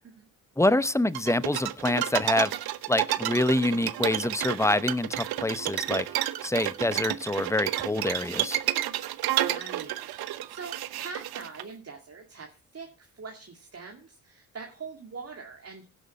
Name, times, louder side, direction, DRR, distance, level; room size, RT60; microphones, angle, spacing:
voice 1, 0.6-2.5 2.9-6.1 6.4-8.6, left 1 dB, 5° left, 17 dB, 0.8 m, -26 dB
sound 1, 1.1-11.6, right 13 dB, 65° right, 0.9 m, -30 dB
voice 2, 9.4-15.9, right 4 dB, 40° right, 2 dB, 2.2 m, -43 dB
17.0 x 6.2 x 4.2 m, 0.33 s
hypercardioid pair, 50°, 40 cm